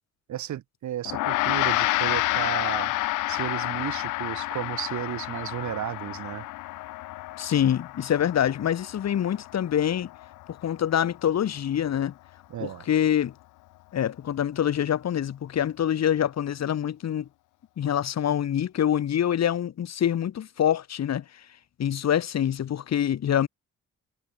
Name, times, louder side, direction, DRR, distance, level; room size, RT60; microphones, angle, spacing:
voice 1, 0.3-2.9 3.3-6.4 12.5-12.8, right 12 dB, 70° right, 2.8 m, -33 dB
Gong, 1.1-10.6, left 19 dB, 85° left, 0.6 m, -29 dB
voice 2, 7.4-10.1 10.5-12.1 12.6-13.3 13.9-17.3 17.8-21.2 21.8-23.5, left 10 dB, 60° left, 2.5 m, -25 dB
cardioid pair, 90°, 30 cm